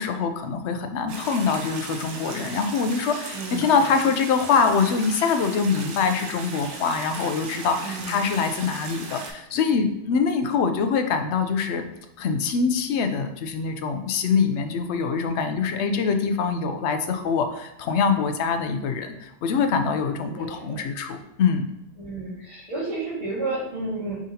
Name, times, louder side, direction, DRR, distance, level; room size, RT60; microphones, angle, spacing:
voice 1, 0.0-11.8 12.2-21.7, left 5 dB, 75° left, 7 dB, 0.8 m, -24 dB
sound 1, 1.1-9.3, right 3 dB, 90° right, 1.0 m, -37 dB
voice 2, 3.3-4.0 7.8-8.3 20.2-20.8 22.0-24.1, right 2 dB, 35° right, -12 dB, 1.8 m, -32 dB
5.1 x 3.6 x 2.8 m, 0.90 s
omnidirectional pair, 1.2 m